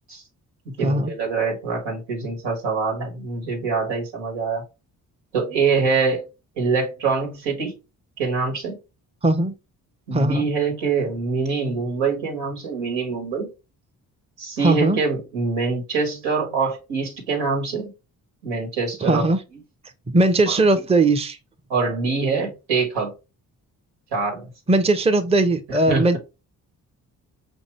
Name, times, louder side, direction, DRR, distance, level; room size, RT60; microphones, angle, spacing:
voice 1, 0.6-4.6 5.3-6.2 6.6-7.8 8.2-8.8 10.1-13.5 14.4-17.9 18.4-19.2 20.5-20.6 21.7-23.1 24.1-24.5 25.7-26.2, right 4 dB, 80° right, 1.7 m, -24 dB
voice 2, 9.2-9.5 10.1-10.4 14.6-15.0 19.0-19.4 20.1-21.4 24.7-26.2, right 2 dB, 15° right, 0.7 m, -19 dB
5.2 x 2.6 x 3.1 m
hypercardioid pair, 45°, 43 cm